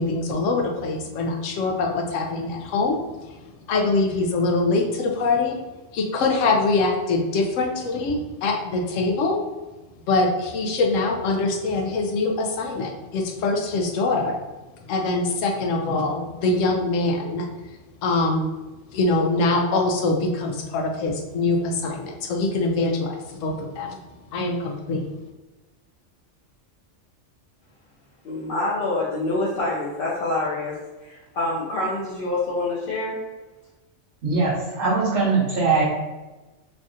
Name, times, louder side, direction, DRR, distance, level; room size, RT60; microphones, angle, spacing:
voice 1, 0.0-3.0 3.2-3.3 3.7-5.6 5.9-9.4 10.1-14.4 14.9-17.5 18.0-18.6 18.9-24.0 24.3-25.1, left 3 dB, 85° left, 2 dB, 0.9 m, -23 dB
voice 2, 28.2-30.7 31.0-33.2, left 2 dB, 55° left, -8 dB, 0.8 m, -26 dB
voice 3, 34.2-35.8, right 4 dB, 70° right, -7 dB, 1.0 m, -21 dB
3.4 x 2.4 x 2.6 m, 1.1 s
omnidirectional pair, 1.3 m